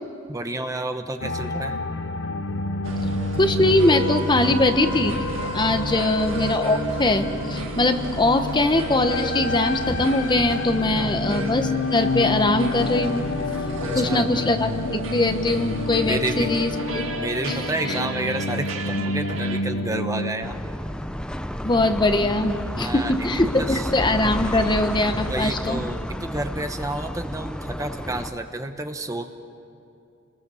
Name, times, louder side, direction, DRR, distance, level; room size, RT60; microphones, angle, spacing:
voice 1, 0.3-1.8 5.7-6.2 10.9-11.2 13.8-14.2 16.0-16.5 17.2-20.6 22.7-23.3 23.6-23.9 25.3-29.3, right 2 dB, 15° right, 7 dB, 1.0 m, -30 dB
sound 1, 1.2-20.3, left 2 dB, 60° left, 0.9 m, -29 dB
sound 2, 2.8-19.6, right 2 dB, 70° right, 2.2 m, -34 dB
voice 2, 3.4-5.1 5.5-13.2 13.9-17.1 17.5-17.6 17.9-18.0 21.6-25.8, left 2 dB, 20° left, 7 dB, 1.1 m, -22 dB
sound 3, 20.4-28.3, equal, 5° left, 0.7 m, -31 dB
30.0 x 21.0 x 7.0 m, 2.6 s
head